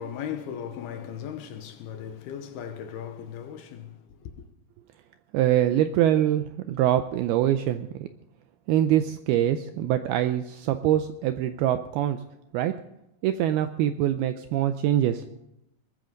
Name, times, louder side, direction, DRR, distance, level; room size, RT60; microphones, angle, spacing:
voice 1, 0.0-4.5, left 8 dB, 75° left, 2.7 m, -37 dB
voice 2, 5.3-8.1 8.7-12.2 12.5-12.7 13.2-15.2, right 11 dB, 80° right, 2.2 m, -24 dB
21.0 x 14.0 x 3.9 m
omnidirectional pair, 5.0 m